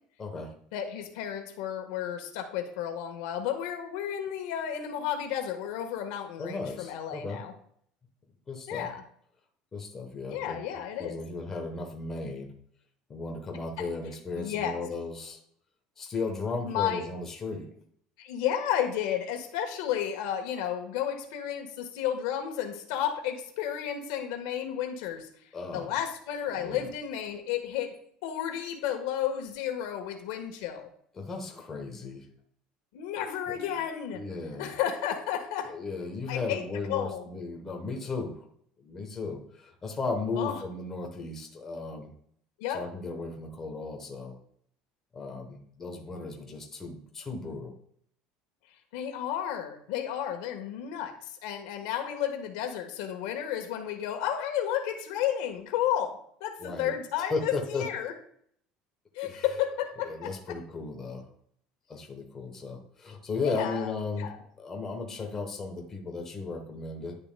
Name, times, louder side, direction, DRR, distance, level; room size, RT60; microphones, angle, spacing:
voice 1, 0.2-0.6 6.4-7.4 8.5-8.9 9.7-10.6 11.0-12.5 13.1-15.4 16.0-17.7 25.5-25.9 26.6-26.9 31.2-32.3 33.5-33.6 34.1-34.7 35.7-38.4 38.8-42.1 42.7-44.4 45.1-47.7 56.6-56.9 57.3-57.9 59.2-59.4 60.0-61.3 61.9-64.3 64.6-67.2, left 3 dB, 15° left, 2 dB, 1.0 m, -35 dB
voice 2, 0.7-7.5 8.7-9.0 10.3-11.2 13.8-13.9 14.4-14.8 16.7-17.1 18.2-25.3 25.7-27.9 28.2-30.9 32.9-34.2 34.6-35.7 36.3-36.6 36.9-37.3 40.3-40.6 42.6-42.8 48.9-58.1 59.1-60.5 63.4-64.4, left 10 dB, 85° left, 6 dB, 1.3 m, -32 dB
10.5 x 6.7 x 2.2 m, 0.64 s
cardioid pair, 180°, 2 cm